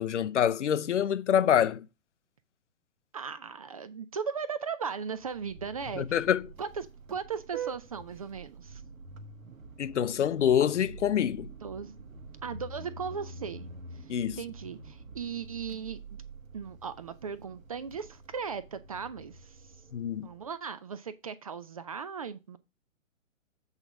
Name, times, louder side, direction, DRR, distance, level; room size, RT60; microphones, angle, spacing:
voice 1, 0.0-1.8 6.0-6.4 9.8-11.5 14.1-14.4 19.9-20.3, left 9 dB, 60° left, 0.6 m, -26 dB
voice 2, 3.1-6.2 6.6-8.8 11.6-12.0 12.4-13.7 13.9-16.0 16.5-19.8 20.2-22.6, right 6 dB, 30° right, 0.4 m, -37 dB
Vehicle horn car horn honking, 5.2-20.5, right 4 dB, 80° right, 1.4 m, -46 dB
8.0 x 4.0 x 5.8 m
figure-of-eight pair, 125°, 40 cm